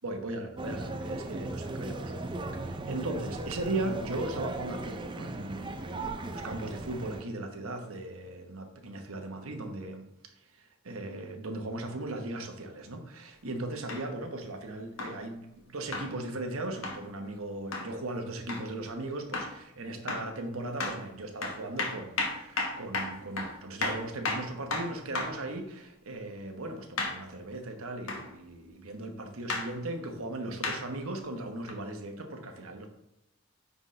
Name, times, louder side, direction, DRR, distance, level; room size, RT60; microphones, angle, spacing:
voice 1, 0.0-10.1 10.6-32.9, right 2 dB, 80° right, 4 dB, 1.1 m, -38 dB
sound 1, 0.6-7.2, right 2 dB, 20° right, 0.4 m, -37 dB
sound 2, 13.9-14.1 15.0-15.2 15.9-16.1 16.8-17.0 17.7-17.9 18.5-18.7 19.3-19.6 20.1-20.3 20.8-21.0 21.4-25.4 27.0-27.2 28.1-28.3 29.5-29.7 30.6-30.8 31.7-31.8, left 3 dB, 75° left, 1.3 m, -33 dB
9.5 x 4.1 x 3.2 m, 0.86 s
head